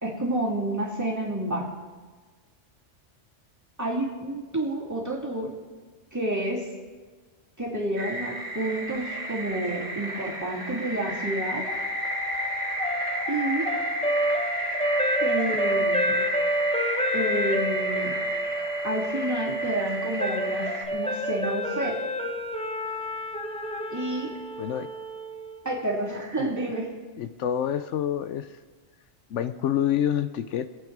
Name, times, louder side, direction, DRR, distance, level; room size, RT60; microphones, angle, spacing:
voice 1, 0.0-1.7 3.8-5.5 6.1-6.7 7.6-11.7 13.3-13.7 15.2-16.2 17.1-18.2 18.8-22.0 23.9-24.3 25.6-26.9, right 1 dB, 15° right, -4 dB, 2.7 m, -29 dB
sound 1, 8.0-20.8, equal, 80° right, 2.4 m, -32 dB
sound 2, 11.7-25.8, equal, 5° left, 0.5 m, -29 dB
voice 2, 27.2-28.6 29.3-30.7, left 10 dB, 80° left, 11 dB, 0.9 m, -27 dB
24.0 x 8.9 x 4.7 m, 1.4 s
omnidirectional pair, 1.3 m